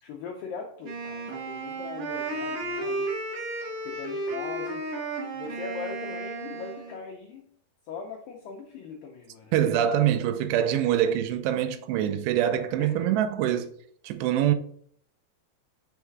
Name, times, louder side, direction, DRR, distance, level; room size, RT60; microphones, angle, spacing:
voice 1, 0.0-3.1 3.8-4.8 5.3-7.5 7.9-9.6 12.8-13.1, left 5 dB, 85° left, 2.0 m, -40 dB
Wind instrument woodwind instrument, 0.8-7.0, right 2 dB, 65° right, 2.6 m, -33 dB
voice 2, 9.5-13.7 14.0-14.5, right 10 dB, 90° right, 2.8 m, -24 dB
6.5 x 3.6 x 4.5 m
omnidirectional pair, 4.8 m